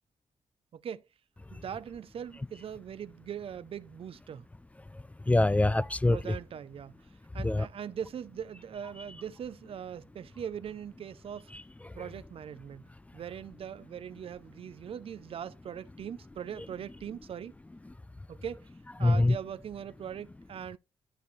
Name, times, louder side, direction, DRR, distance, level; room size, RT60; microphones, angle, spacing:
voice 1, 0.7-1.0 1.5-4.5 6.1-6.9 7.3-11.5 12.0-12.9 13.1-17.5 18.3-18.7 19.0-20.8, right 8 dB, 60° right, 0.5 m, -41 dB
voice 2, 4.9-6.2 7.4-7.7 11.5-11.9 19.0-19.4, left 2 dB, 15° left, 0.3 m, -25 dB
12.5 x 4.2 x 3.1 m
cardioid pair, 95°, 11 cm